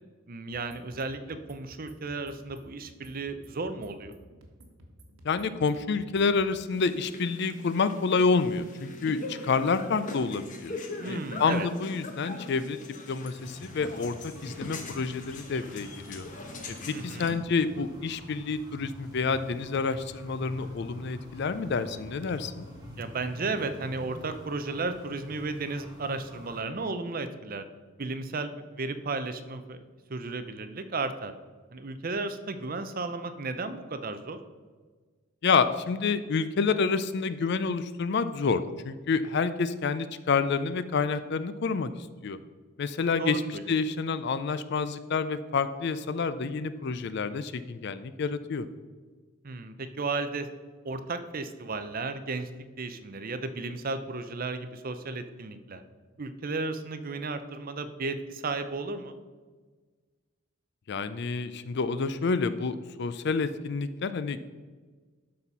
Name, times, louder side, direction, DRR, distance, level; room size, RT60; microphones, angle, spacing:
voice 1, 0.3-4.1 10.9-11.7 16.9-17.4 23.0-27.6 28.0-29.8 30.1-31.3 31.7-34.4 43.2-43.6 49.4-50.5 50.8-52.5 52.8-55.8 56.2-59.2, right 3 dB, 40° right, 10 dB, 0.6 m, -34 dB
sound 1, 0.5-6.7, equal, 90° right, 1.4 m, -54 dB
voice 2, 5.2-10.7 11.1-12.8 13.1-14.2 14.4-16.3 17.0-22.7 35.4-41.9 42.2-42.4 42.8-43.4 43.7-48.7 60.9-64.4, left 4 dB, 50° left, 13 dB, 0.4 m, -28 dB
sound 2, 6.7-17.3, left 2 dB, 35° left, 1.0 m, -42 dB
sound 3, 13.3-26.6, equal, 20° right, 2.2 m, -46 dB
11.5 x 4.2 x 5.5 m, 1.4 s
head